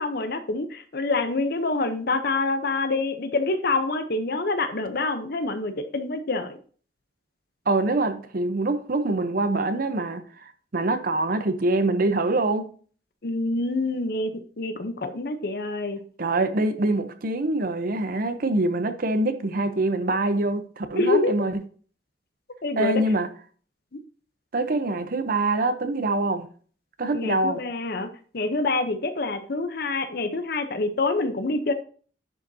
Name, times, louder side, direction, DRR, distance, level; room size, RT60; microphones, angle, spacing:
voice 1, 0.0-6.6 13.2-16.0 21.0-21.3 22.6-23.0 27.1-28.1 28.3-31.7, left 3 dB, 55° left, 0.8 m, -26 dB
voice 2, 7.7-10.2 10.7-12.7 16.2-21.6 22.8-23.3 24.5-26.5 27.0-27.6, right 2 dB, 50° right, 0.7 m, -24 dB
10.5 x 5.3 x 2.7 m
head